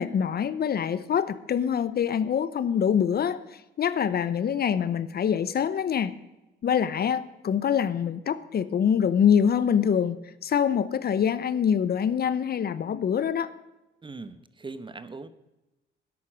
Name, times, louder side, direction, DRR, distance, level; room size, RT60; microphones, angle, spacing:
voice 1, 0.0-6.1 6.6-10.2 10.4-13.5, left 8 dB, 50° left, 15 dB, 0.8 m, -25 dB
voice 2, 14.0-15.3, right 3 dB, 25° right, 13 dB, 1.0 m, -40 dB
11.0 x 8.4 x 7.4 m, 1.0 s
cardioid pair, 90°, 20 cm